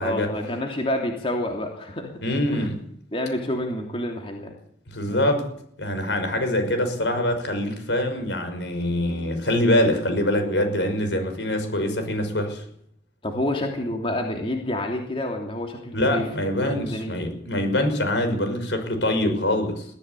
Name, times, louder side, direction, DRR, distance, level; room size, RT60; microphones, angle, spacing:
voice 1, 0.0-2.1 2.5-2.7 3.1-4.5 5.1-5.3 13.2-16.3 16.6-17.1, left 1 dB, 30° left, 2 dB, 3.0 m, -28 dB
voice 2, 2.2-2.8 4.9-5.4 5.8-12.6 15.9-19.9, left 1 dB, 75° left, 7 dB, 5.9 m, -24 dB
22.0 x 15.0 x 8.5 m, 0.67 s
head